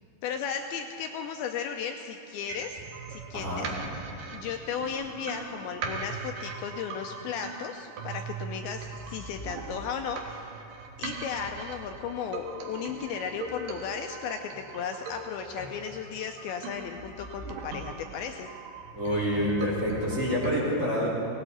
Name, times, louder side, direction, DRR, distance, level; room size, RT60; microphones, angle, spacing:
voice 1, 0.2-2.8 3.1-3.8 4.3-10.6 11.0-18.5, left 7 dB, 90° left, 5 dB, 2.2 m, -35 dB
sound 1, 2.5-20.5, right 4 dB, 65° right, 2.6 m, -40 dB
voice 2, 3.3-3.7 18.9-21.1, equal, 20° right, -8 dB, 4.0 m, -27 dB
19.5 x 18.0 x 4.1 m, 2.7 s
omnidirectional pair, 5.1 m